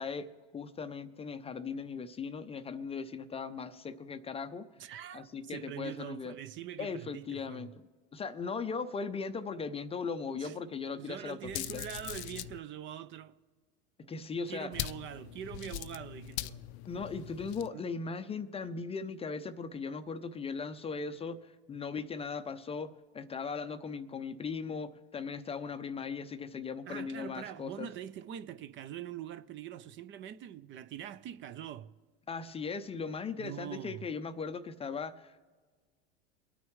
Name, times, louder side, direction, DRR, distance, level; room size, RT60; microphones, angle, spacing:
voice 1, 0.0-4.7 5.1-6.4 6.8-7.7 8.1-11.8 14.0-14.7 16.9-27.9 32.3-35.5, left 5 dB, 20° left, 0.5 m, -38 dB
voice 2, 4.8-7.7 10.4-10.6 10.9-13.3 14.5-16.7 17.7-17.9 26.9-31.9 33.4-34.0, right 10 dB, 35° right, 0.5 m, -43 dB
sound 1, 11.4-12.6 14.7-17.7, left 15 dB, 75° left, 0.5 m, -41 dB
23.5 x 9.5 x 3.2 m
hypercardioid pair, 105°, 33 cm